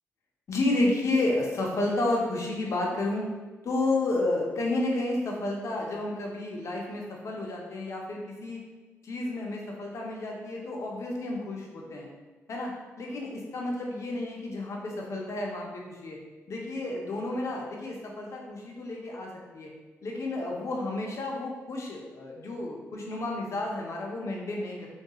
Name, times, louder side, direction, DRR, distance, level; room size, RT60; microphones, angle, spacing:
voice 1, 0.5-3.3 3.6-8.6 9.0-12.1 12.5-12.7 13.0-16.2 16.5-19.7 20.0-24.9, left 2 dB, 60° left, -1 dB, 0.5 m, -31 dB
2.3 x 2.2 x 2.8 m, 1.2 s
cardioid pair, 65°, 6 cm